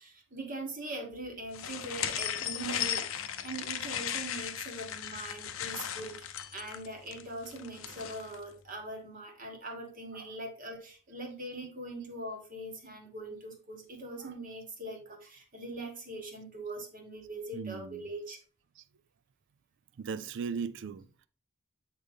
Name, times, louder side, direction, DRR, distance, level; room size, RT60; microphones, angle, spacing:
voice 1, 0.0-6.3 6.5-18.4, right 1 dB, 40° right, 1.4 m, -42 dB
sound 1, 1.5-8.4, left 9 dB, 70° left, 0.6 m, -36 dB
voice 2, 17.5-18.1 20.0-21.1, right 6 dB, 60° right, 0.4 m, -37 dB
8.0 x 3.9 x 3.4 m
head